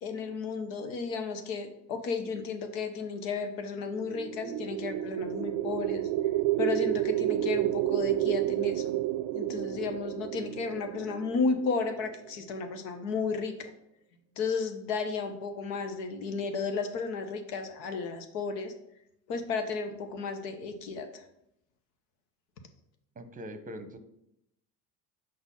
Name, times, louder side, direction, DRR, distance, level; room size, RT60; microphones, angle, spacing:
voice 1, 0.0-6.1 6.6-9.0 9.3-13.7 14.4-18.7 19.3-21.2, left 4 dB, 75° left, 7 dB, 1.0 m, -33 dB
sound 1, 4.0-12.1, right 14 dB, 55° right, 0.5 m, -30 dB
voice 2, 23.2-24.0, equal, 15° right, 10 dB, 0.8 m, -42 dB
5.1 x 4.0 x 5.6 m, 0.79 s
hypercardioid pair, 70°, 50 cm